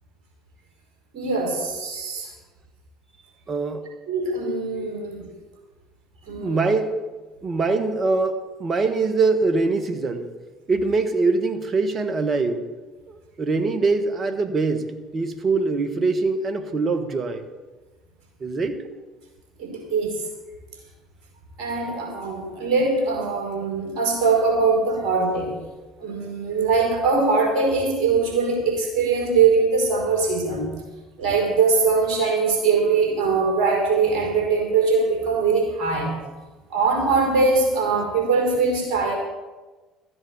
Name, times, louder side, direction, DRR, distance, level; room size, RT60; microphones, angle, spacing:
voice 1, 1.1-2.3 4.1-5.3 6.3-6.7 19.6-20.2 21.6-25.5 26.0-30.7 31.2-36.2 36.7-39.2, right 4 dB, 60° right, -1 dB, 5.0 m, -22 dB
voice 2, 3.5-3.8 4.8-4.9 6.4-7.0 7.4-10.3 10.7-12.6 13.1-17.4 18.4-18.8, right 3 dB, 40° right, 9 dB, 1.5 m, -23 dB
14.0 x 7.9 x 8.0 m, 1.2 s
hypercardioid pair, 60°, 0 cm